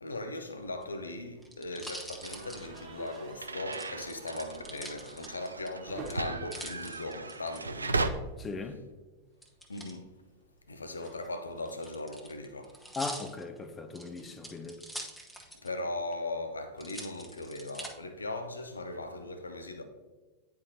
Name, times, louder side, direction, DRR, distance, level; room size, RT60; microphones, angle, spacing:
voice 1, 0.0-8.2 9.7-10.1 10.7-12.8 14.2-14.5 15.6-19.8, left 2 dB, 75° left, 0.6 m, -39 dB
sound 1, 0.7-3.2 3.7-5.7 6.0-7.6 9.4-9.9 10.9-15.8 16.1-16.2 16.8-17.9 18.5-19.1, right 1 dB, 5° left, 0.9 m, -45 dB
sound 2, 2.0-8.1 8.4-8.6 8.8-8.9 10.2-12.5, right 4 dB, 35° right, 1.2 m, -51 dB
sound 3, 2.2-8.1, right 3 dB, 80° right, 0.3 m, -37 dB
voice 2, 8.4-8.8 13.0-14.8, left 3 dB, 20° left, 0.6 m, -38 dB
9.5 x 4.4 x 2.7 m
figure-of-eight pair, 90°, 0 cm